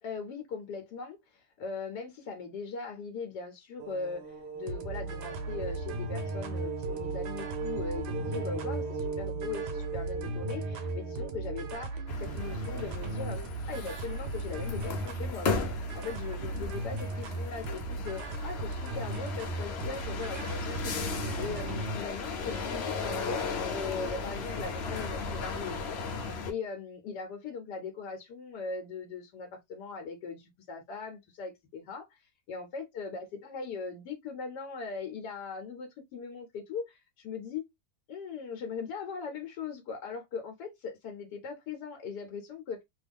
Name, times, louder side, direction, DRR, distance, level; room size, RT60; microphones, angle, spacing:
voice 1, 0.0-21.0 21.4-32.2 32.5-37.6 38.1-42.8, left 5 dB, 90° left, 1.3 m, -40 dB
sound 1, 3.8-11.8, right 5 dB, 50° right, 1.0 m, -39 dB
sound 2, 4.7-22.0, right 2 dB, 80° right, 1.3 m, -37 dB
sound 3, 12.1-26.5, left 4 dB, 60° left, 0.7 m, -36 dB
3.0 x 2.3 x 3.3 m
omnidirectional pair, 1.7 m